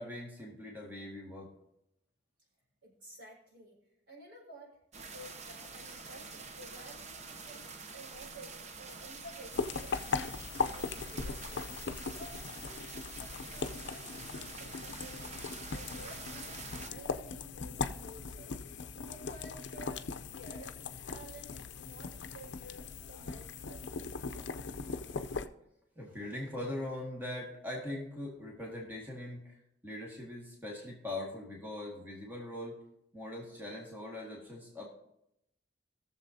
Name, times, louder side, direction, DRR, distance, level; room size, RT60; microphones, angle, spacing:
voice 1, 0.0-1.5 17.8-17.9 23.1-23.2 24.2-24.3 25.0-25.4 26.0-32.8 33.1-34.9, left 1 dB, 10° right, -3 dB, 1.8 m, -42 dB
voice 2, 2.8-3.8 4.1-4.8 5.1-14.7 15.0-20.7 21.0-23.8 24.3-24.7, right 1 dB, 70° right, -4 dB, 4.9 m, -53 dB
sound 1, 4.9-16.9, right 4 dB, 40° right, 0.7 m, -47 dB
sound 2, 9.5-25.5, left 4 dB, 70° left, 0.5 m, -39 dB
20.0 x 7.1 x 2.7 m, 0.79 s
head